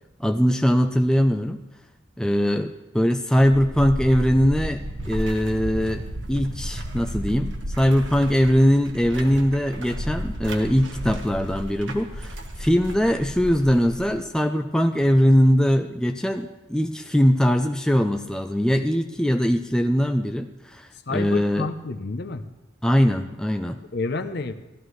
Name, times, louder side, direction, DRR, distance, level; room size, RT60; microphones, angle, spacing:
voice 1, 0.2-1.6 2.2-6.0 6.3-21.7 22.8-23.8, equal, 5° left, 6 dB, 0.4 m, -21 dB
sound 1, 3.4-14.2, right 1 dB, 70° right, 1.3 m, -33 dB
voice 2, 21.1-22.4 23.9-24.5, left 3 dB, 55° left, 8 dB, 0.7 m, -29 dB
16.0 x 13.0 x 3.1 m, 1.0 s
head